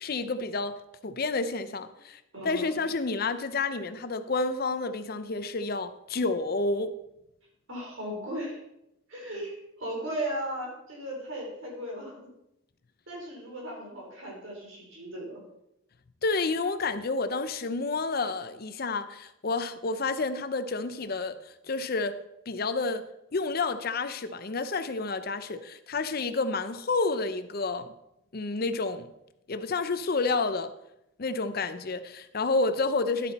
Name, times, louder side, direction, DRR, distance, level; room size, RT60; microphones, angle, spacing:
voice 1, 0.0-7.0 16.2-23.1 23.3-27.9 28.3-29.1 29.5-30.7 31.2-33.3, left 3 dB, 50° left, 0.6 m, -30 dB
voice 2, 2.3-2.8 7.7-8.6 9.1-12.3 13.1-15.4, right 1 dB, 75° right, 4.0 m, -36 dB
11.5 x 8.1 x 4.2 m
head